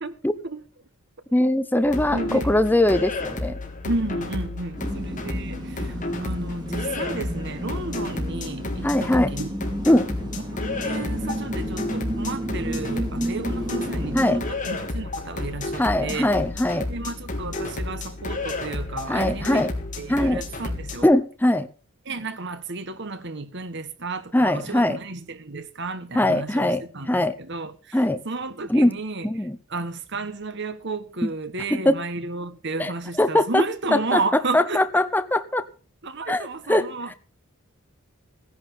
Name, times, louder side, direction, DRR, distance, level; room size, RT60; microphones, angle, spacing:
voice 1, 0.0-0.7 2.1-2.5 3.8-9.5 10.5-16.3 16.9-21.1 22.0-34.8 36.0-37.2, right 3 dB, 55° right, 1.4 m, -32 dB
voice 2, 1.3-3.6 8.8-9.3 9.9-10.1 14.1-14.4 15.8-16.9 19.1-19.7 20.1-20.4 21.0-21.7 24.3-25.0 26.1-26.8 27.1-27.4 27.9-28.2 28.7-28.9 29.2-29.6 31.7-32.0 32.8-32.9 33.2-33.6 33.9-34.2 34.5-35.7 36.3-36.9, left 1 dB, 10° left, 0.7 m, -21 dB
sound 1, 1.8-21.0, left 2 dB, 40° left, 3.5 m, -31 dB
sound 2, 4.8-14.4, right 1 dB, 20° right, 2.8 m, -32 dB
16.5 x 11.0 x 5.6 m
head